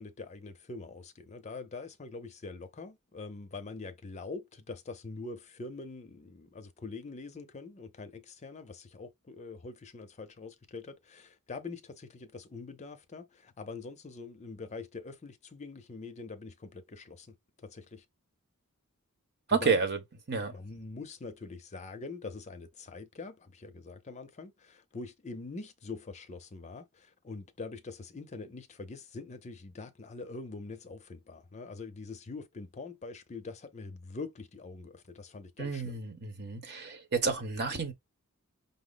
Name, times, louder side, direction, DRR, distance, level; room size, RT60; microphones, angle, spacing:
voice 1, 0.0-17.3 17.6-18.0 19.6-19.8 20.5-36.0, left 3 dB, 30° left, 0.5 m, -44 dB
voice 2, 19.5-20.0 20.3-20.6 35.6-37.9, right 5 dB, 50° right, 1.0 m, -30 dB
5.3 x 2.0 x 3.9 m
head